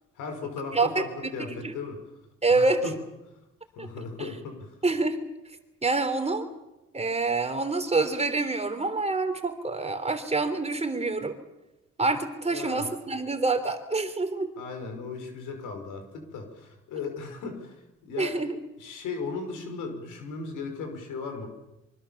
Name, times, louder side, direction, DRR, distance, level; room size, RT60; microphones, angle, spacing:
voice 1, 0.2-2.0 2.5-2.9 3.8-4.8 12.5-12.9 14.6-18.4 18.8-21.5, left 4 dB, 90° left, 6 dB, 5.7 m, -37 dB
voice 2, 0.7-1.0 1.5-1.7 2.4-2.8 3.8-3.9 4.2-4.3 4.8-5.2 5.8-6.5 6.9-11.4 12.0-14.5 18.2-18.6, right 3 dB, 20° right, 8 dB, 3.4 m, -26 dB
24.5 x 24.5 x 7.3 m, 0.97 s
cardioid pair, 90°, 30 cm